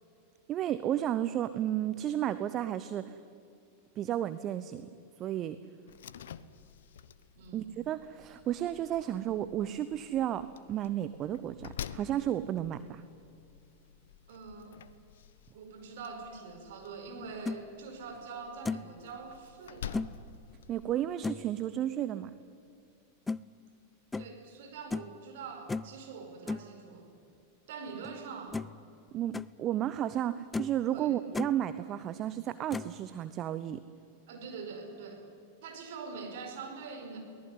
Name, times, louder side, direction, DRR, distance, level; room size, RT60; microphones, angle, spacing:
voice 1, 0.5-3.2 4.0-4.9 5.2-5.6 7.5-13.0 20.7-22.3 29.1-33.8, right 11 dB, 30° right, 13 dB, 0.8 m, -33 dB
Slam, 5.9-20.9, left 9 dB, 60° left, 0.8 m, -49 dB
voice 2, 7.3-7.7 14.3-14.8 15.5-20.0 24.2-27.1 27.7-28.6 30.9-31.1 34.3-35.2 35.6-37.2, right 5 dB, 55° right, 4 dB, 4.8 m, -44 dB
sound 1, 17.2-17.6 18.1-18.2 18.6-18.9 19.9-20.1 21.2-21.5 23.3-23.4 24.1-24.3 24.9-25.1 25.7-26.0 26.5-26.7 28.0-28.1 28.5-28.8 29.1-29.5 30.0-30.1 30.5-30.8 31.1-31.5 32.7-33.0, left 3 dB, 10° left, 0.5 m, -35 dB
23.0 x 18.5 x 9.7 m, 2.7 s
figure-of-eight pair, 90°, 0 cm